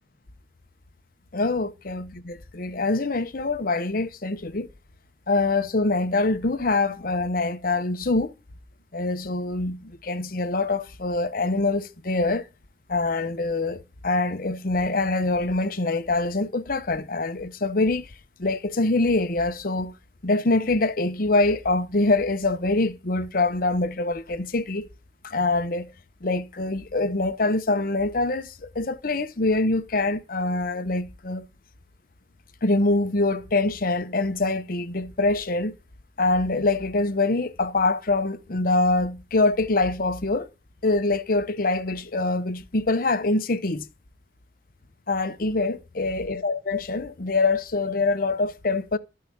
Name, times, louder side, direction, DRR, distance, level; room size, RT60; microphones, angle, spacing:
voice 1, 1.3-4.7 5.3-8.3 8.9-12.5 12.9-18.1 18.4-19.9 20.2-24.9 25.2-25.9 26.2-31.5 32.6-35.7 36.2-40.5 40.8-43.9 45.1-49.0, left 2 dB, 50° left, 0.9 m, -24 dB
13.0 x 4.7 x 8.5 m
head